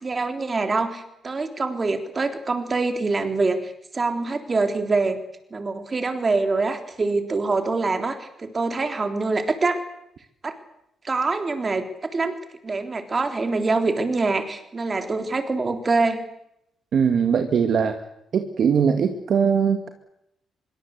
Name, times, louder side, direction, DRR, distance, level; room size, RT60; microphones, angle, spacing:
voice 1, 0.0-5.2 5.5-9.8 10.4-10.6 11.0-12.4 12.6-16.2, right 3 dB, 20° right, 7 dB, 3.6 m, -25 dB
voice 2, 16.9-18.0 18.3-19.9, right 7 dB, 45° right, 6 dB, 2.2 m, -20 dB
25.5 x 23.5 x 8.3 m, 0.78 s
cardioid pair, 175°, 0 cm